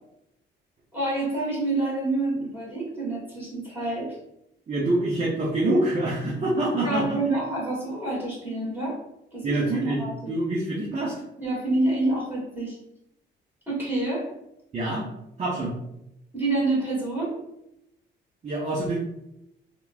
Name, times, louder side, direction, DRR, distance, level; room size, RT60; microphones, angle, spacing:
voice 1, 0.9-4.2 6.8-9.0 9.3-9.6 9.8-10.3 11.4-12.8 13.7-14.3 16.3-17.4, right 2 dB, 10° right, -7 dB, 1.4 m, -27 dB
voice 2, 4.7-7.2 9.4-11.1 14.7-15.0 15.4-15.7 18.4-19.0, right 2 dB, 35° right, -4 dB, 0.6 m, -25 dB
3.0 x 2.2 x 2.4 m, 0.82 s
cardioid pair, 90°, 20 cm